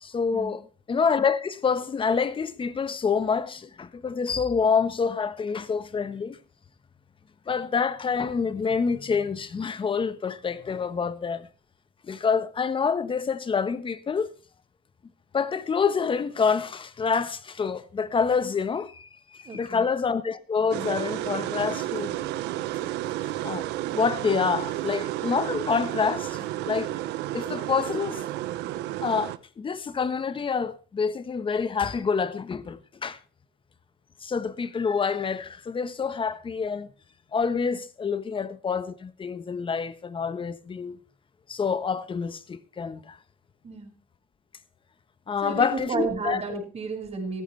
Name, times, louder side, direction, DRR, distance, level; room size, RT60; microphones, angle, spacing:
voice 1, 0.0-0.6 0.9-6.4 7.5-11.5 12.0-14.3 15.3-22.1 23.4-23.7 23.9-26.9 27.3-28.2 29.0-33.2 34.2-36.9 37.3-41.0 41.5-43.2 45.3-46.4, left 5 dB, 30° left, 1.2 m, -27 dB
voice 2, 19.4-19.9 38.4-38.5 43.6-43.9 45.4-47.4, right 3 dB, 40° right, 5.6 m, -32 dB
sound 1, 20.7-29.4, right 15 dB, 90° right, 0.8 m, -31 dB
15.0 x 14.0 x 3.3 m
cardioid pair, 110°, 17 cm